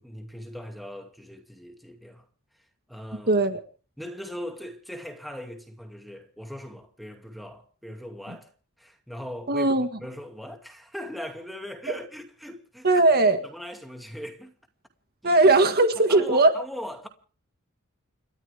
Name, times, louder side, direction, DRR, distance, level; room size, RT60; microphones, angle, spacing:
voice 1, 0.0-2.3 2.9-3.4 4.0-8.5 8.8-12.9 13.4-14.5 15.2-15.4 16.0-17.1, equal, ahead, 2.4 m, -39 dB
voice 2, 3.3-3.6 8.3-8.4 9.5-9.9 11.9-12.0 12.8-13.4 15.2-16.5, right 2 dB, 45° right, 1.8 m, -19 dB
29.5 x 13.5 x 3.5 m
head